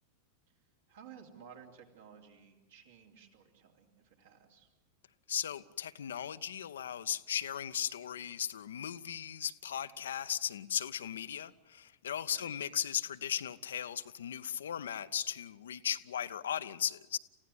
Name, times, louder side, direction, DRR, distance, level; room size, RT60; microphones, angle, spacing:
voice 1, 0.9-4.7 12.3-12.5, right 7 dB, 60° right, 2 dB, 3.1 m, -55 dB
voice 2, 5.3-17.2, left 9 dB, 65° left, 13 dB, 0.7 m, -37 dB
28.5 x 16.0 x 7.8 m, 1.1 s
figure-of-eight pair, 90°, 0 cm